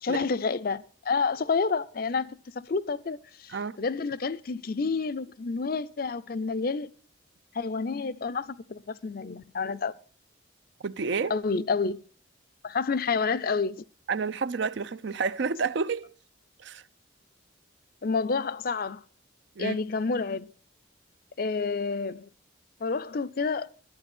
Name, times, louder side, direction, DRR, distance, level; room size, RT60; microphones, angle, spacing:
voice 1, 0.0-6.9 7.5-9.9 11.3-12.0 12.6-13.8 18.0-19.0 19.6-20.5 21.4-22.3 22.8-23.7, left 4 dB, 50° left, 0.5 m, -29 dB
voice 2, 10.8-11.4 14.1-16.1 16.6-16.8 19.6-19.8, right 5 dB, 65° right, 0.5 m, -30 dB
11.5 x 8.8 x 6.1 m
head